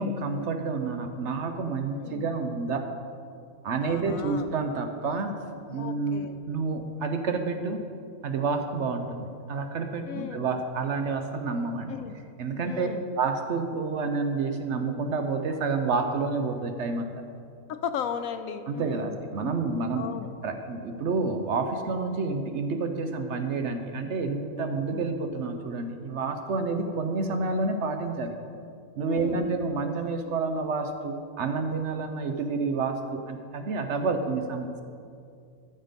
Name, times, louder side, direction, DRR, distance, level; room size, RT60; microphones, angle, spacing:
voice 1, 0.0-2.9 3.6-5.4 5.7-7.8 8.2-11.9 12.4-12.9 13.2-17.1 18.7-20.1 20.4-28.3 29.0-34.8, right 4 dB, 60° right, 6 dB, 1.0 m, -29 dB
voice 2, 1.9-2.3 3.8-4.4 5.8-6.4 10.0-10.5 11.6-12.1 12.6-13.1 17.7-19.2 19.9-20.3 24.5-25.0 29.1-29.5, left 8 dB, 80° left, 9 dB, 1.1 m, -36 dB
13.0 x 6.6 x 5.2 m, 2.4 s
omnidirectional pair, 1.4 m